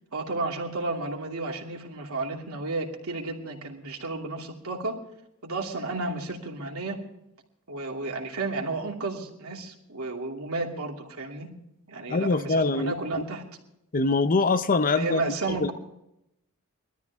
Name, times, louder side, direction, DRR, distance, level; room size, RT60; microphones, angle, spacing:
voice 1, 0.1-5.0 5.4-7.0 7.7-11.5 11.9-13.4 15.0-15.7, right 3 dB, 75° right, 2.8 m, -32 dB
voice 2, 12.1-13.2 13.9-15.2 15.5-15.7, left 3 dB, 40° left, 0.7 m, -24 dB
21.5 x 13.0 x 3.6 m
head